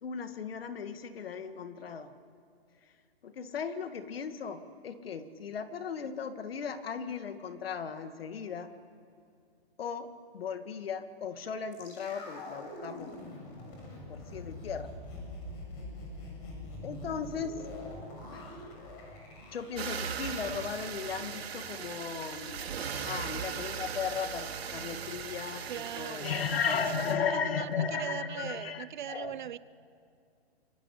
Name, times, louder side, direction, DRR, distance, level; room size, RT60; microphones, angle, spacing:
voice 1, 0.0-2.1 3.2-8.7 9.8-13.1 14.1-14.9 16.8-17.6 18.3-18.7 19.5-22.7 23.0-29.4, left 6 dB, 65° left, 2.1 m, -36 dB
sound 1, 11.7-21.9 22.1-22.2, left 1 dB, 30° left, 7.1 m, -45 dB
sound 2, 19.8-27.1, right 7 dB, 70° right, 2.7 m, -38 dB
voice 2, 25.7-29.6, right 10 dB, 50° right, 0.8 m, -40 dB
27.0 x 23.5 x 8.5 m
hypercardioid pair, 155°, 32 cm